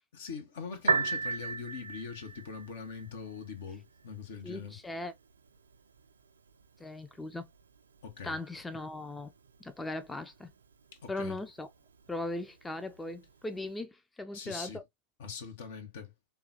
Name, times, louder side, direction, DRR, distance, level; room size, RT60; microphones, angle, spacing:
voice 1, 0.1-4.8 8.0-8.4 11.0-11.4 14.3-14.8 15.2-16.1, left 5 dB, 70° left, 0.9 m, -42 dB
Piano, 0.7-13.8, right 4 dB, 85° right, 0.4 m, -40 dB
voice 2, 4.4-5.1 6.8-7.5 8.2-9.3 9.6-10.5 11.1-11.7 12.1-14.8, left 2 dB, 10° left, 0.4 m, -38 dB
3.6 x 2.3 x 2.7 m
hypercardioid pair, 90°, 0 cm